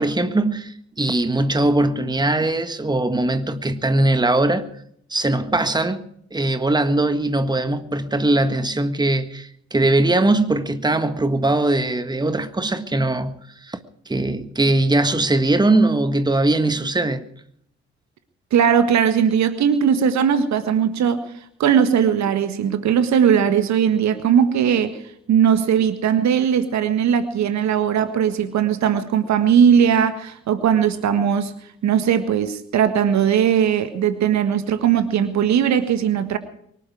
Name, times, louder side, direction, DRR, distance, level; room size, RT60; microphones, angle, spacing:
voice 1, 0.0-4.7 5.1-6.0 6.3-13.8 14.1-17.3, right 2 dB, 15° right, 1.6 m, -20 dB
voice 2, 18.5-21.2 21.6-24.9 25.3-31.5 31.8-36.4, right 8 dB, 55° right, 1.7 m, -19 dB
24.0 x 11.5 x 4.9 m
figure-of-eight pair, 40°, 33 cm